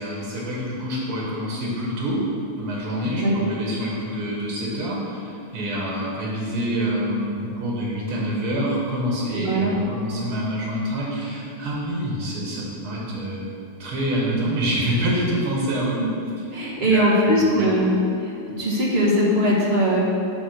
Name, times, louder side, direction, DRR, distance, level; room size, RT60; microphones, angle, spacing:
voice 1, 0.0-2.2 2.6-13.5 13.8-16.0 16.8-17.7, equal, 85° right, -4 dB, 2.3 m, -26 dB
voice 2, 9.3-9.7 16.0-16.1 16.5-17.9 18.2-18.3 18.6-20.0, equal, 35° right, -4 dB, 1.2 m, -20 dB
10.0 x 3.5 x 6.5 m, 2.6 s
omnidirectional pair, 2.3 m